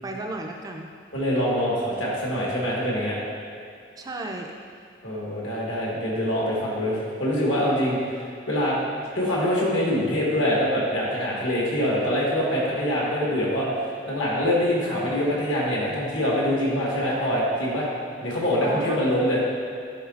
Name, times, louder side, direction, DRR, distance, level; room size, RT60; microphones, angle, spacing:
voice 1, 0.0-0.9 4.0-4.9 5.5-5.6 18.6-19.0, right 2 dB, 20° right, 1 dB, 0.3 m, -34 dB
voice 2, 1.1-3.2 5.0-8.8 9.1-17.9 18.2-19.4, equal, 80° left, -5 dB, 1.5 m, -24 dB
10.0 x 3.8 x 2.4 m, 2.3 s
head